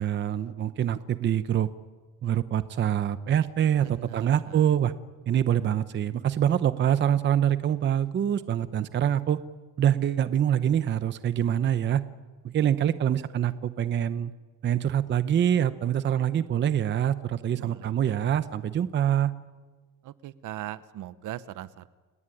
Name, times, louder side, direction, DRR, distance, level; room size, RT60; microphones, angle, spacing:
voice 1, 0.0-1.7 2.2-4.9 5.3-9.4 9.8-12.0 12.4-14.3 14.6-19.3, right 10 dB, 30° right, 13 dB, 0.8 m, -25 dB
voice 2, 3.8-4.7 17.5-17.9 18.2-18.3 20.0-21.9, right 13 dB, 55° right, 15 dB, 1.0 m, -40 dB
29.5 x 18.5 x 10.0 m, 1.3 s
cardioid pair, 170°, 36 cm